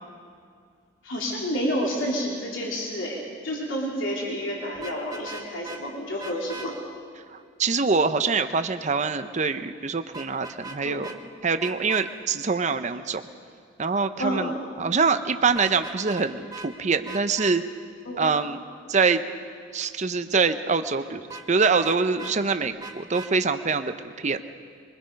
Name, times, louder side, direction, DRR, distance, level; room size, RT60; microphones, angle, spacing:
voice 1, 1.0-6.8 10.8-11.0 14.2-14.5 18.0-18.3, equal, 80° left, -3 dB, 3.3 m, -29 dB
Vehicle horn car horn honking, 4.7-5.8 6.2-6.7 10.1-10.8 11.0-11.2 11.6-12.1 15.5-16.3 16.5-16.7 17.1-17.5 21.3-22.4 22.8-23.3, right 3 dB, 20° right, 1.2 m, -39 dB
voice 2, 7.3-11.1 11.4-13.2 13.8-17.6 18.2-18.6 18.9-19.2 19.7-24.4, right 4 dB, 40° right, 9 dB, 0.6 m, -24 dB
23.0 x 22.0 x 5.3 m, 2.3 s
head